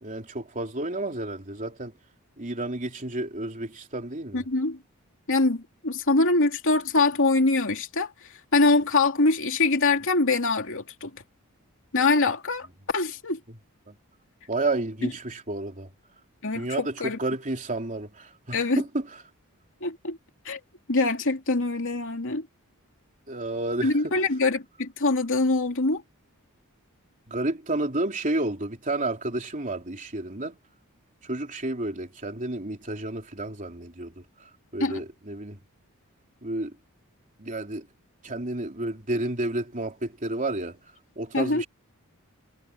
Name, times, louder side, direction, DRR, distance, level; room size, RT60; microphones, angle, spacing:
voice 1, 0.0-1.9 2.4-4.5 13.5-13.6 13.9-14.0 14.5-15.9 16.5-19.2 23.3-24.2 27.3-30.6 31.2-35.6 36.4-36.8 37.4-37.9 38.2-40.8 41.2-41.7, right 2 dB, 35° right, 3.4 m, -31 dB
voice 2, 4.3-4.8 5.3-8.1 8.5-11.1 11.9-13.4 15.0-15.1 16.4-17.2 18.5-18.8 19.8-20.2 20.4-20.6 20.9-22.5 23.8-26.0 34.8-35.0 41.3-41.6, left 3 dB, 60° left, 2.9 m, -24 dB
head